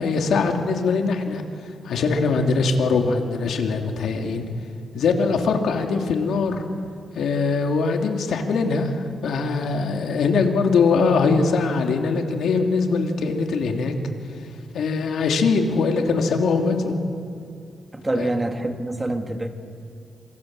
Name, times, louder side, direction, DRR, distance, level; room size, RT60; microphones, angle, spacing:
voice 1, 0.0-1.4 1.8-4.5 4.9-6.6 7.1-13.9 14.7-16.9 18.1-18.3, left 4 dB, 80° left, 3 dB, 3.1 m, -22 dB
voice 2, 17.9-19.5, right 2 dB, 20° right, 5 dB, 2.6 m, -26 dB
27.5 x 26.5 x 7.9 m, 2.5 s
cardioid pair, 95°, 0 cm